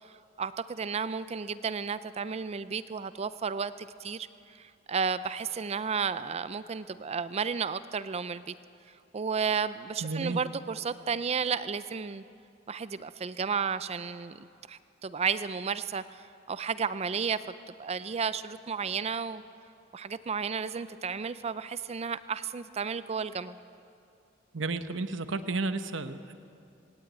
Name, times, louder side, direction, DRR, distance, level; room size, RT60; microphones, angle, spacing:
voice 1, 0.4-8.5 9.1-12.2 12.7-17.4 17.8-19.4 19.9-23.6, right 6 dB, 35° right, 14 dB, 0.4 m, -33 dB
voice 2, 10.0-10.4 24.5-26.3, right 3 dB, 70° right, 10 dB, 1.0 m, -32 dB
18.5 x 18.0 x 9.0 m, 2.5 s
head